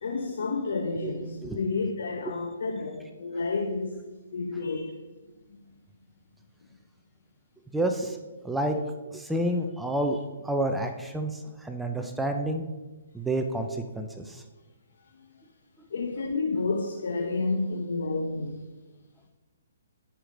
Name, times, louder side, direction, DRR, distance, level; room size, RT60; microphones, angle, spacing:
voice 1, 0.0-4.0 4.3-5.0 15.2-15.4 15.9-18.6, left 3 dB, 70° left, 0.8 m, -30 dB
voice 2, 1.0-1.6 2.3-2.4 7.7-8.8 9.1-10.2 10.4-12.6 13.1-14.4, right 1 dB, 5° right, 0.5 m, -29 dB
10.0 x 4.9 x 5.1 m
hypercardioid pair, 145°, 0 cm